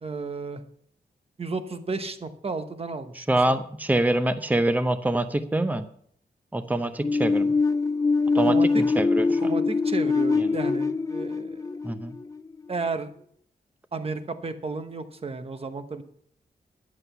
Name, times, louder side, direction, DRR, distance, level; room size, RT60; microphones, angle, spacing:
voice 1, 0.0-0.6 1.4-3.6 8.5-8.8 9.4-11.6 12.7-13.1 13.9-16.0, right 3 dB, 35° right, 8 dB, 1.0 m, -33 dB
voice 2, 3.2-5.9 6.5-7.5 8.3-9.5 10.4-10.5 11.8-12.1, right 1 dB, 10° right, 10 dB, 0.7 m, -25 dB
sound 1, 7.0-12.7, left 4 dB, 20° left, 0.3 m, -23 dB
11.0 x 8.1 x 5.6 m, 0.63 s
wide cardioid pair, 110°, 17 cm